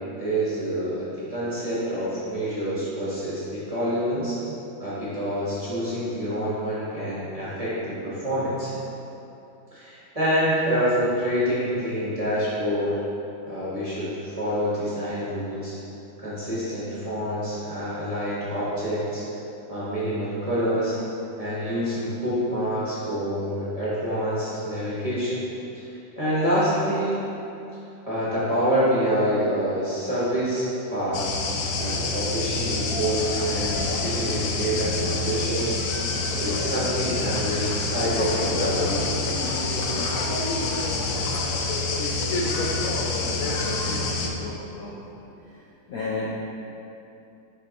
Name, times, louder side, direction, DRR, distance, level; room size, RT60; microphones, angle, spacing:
voice 1, 0.2-4.4 4.8-8.7 9.7-13.0 13.5-15.8 16.2-19.2 19.7-21.0 21.4-25.4 25.7-27.2 28.0-31.2 31.8-35.8 36.3-38.8, equal, 20° right, -10 dB, 1.1 m, -27 dB
sound 1, 31.1-44.3, left 3 dB, 90° left, 0.7 m, -26 dB
voice 2, 43.4-44.0 44.3-44.9 45.9-46.3, left 3 dB, 65° left, -6 dB, 0.9 m, -33 dB
6.6 x 3.6 x 4.1 m, 2.8 s
omnidirectional pair, 2.1 m